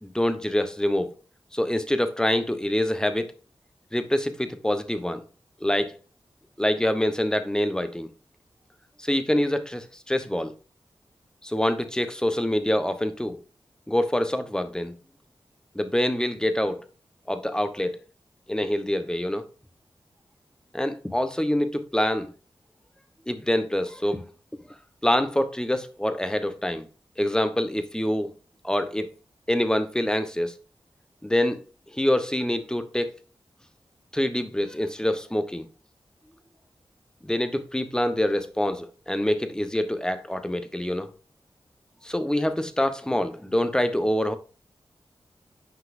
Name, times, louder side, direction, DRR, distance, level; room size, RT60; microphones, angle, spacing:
voice 1, 0.0-1.1 1.5-3.3 3.9-5.2 5.6-5.9 6.6-8.1 9.0-10.5 11.4-13.4 13.9-15.0 15.7-16.8 17.3-18.0 18.5-19.4 20.7-22.3 23.3-24.3 25.0-26.9 27.2-28.3 28.6-29.1 29.5-30.5 31.2-31.6 31.9-33.2 34.1-35.7 37.2-41.1 42.0-44.3, left 1 dB, 10° left, 1.0 m, -25 dB
9.4 x 5.6 x 2.6 m
wide cardioid pair, 60°, 10 cm